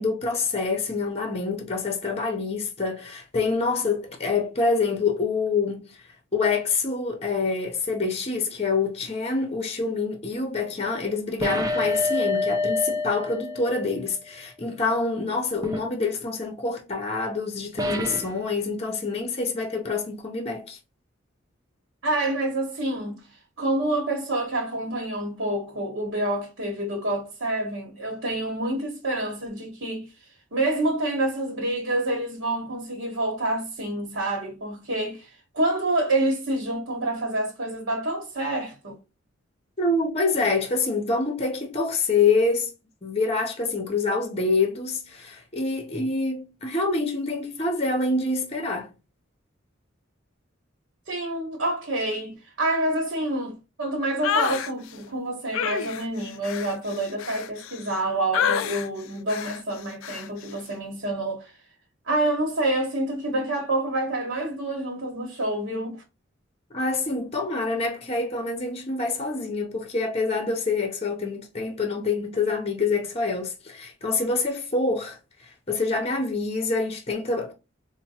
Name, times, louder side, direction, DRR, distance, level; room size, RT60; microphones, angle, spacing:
voice 1, 0.0-6.0 6.3-20.8 39.8-42.7 43.0-48.9 66.7-75.2 75.4-77.5, left 3 dB, 30° left, 0.7 m, -26 dB
sound 1, 11.4-14.0 15.6-15.9 17.8-18.4, left 2 dB, 20° right, 0.4 m, -27 dB
voice 2, 22.0-23.3 23.6-30.1 30.5-39.0 51.1-61.5 62.1-66.0, right 1 dB, 70° right, 1.1 m, -27 dB
sound 2, 54.2-54.7 55.5-58.0 58.3-58.9 59.3-59.6 60.0-60.3, left 8 dB, 90° left, 0.3 m, -28 dB
4.3 x 2.2 x 2.7 m
head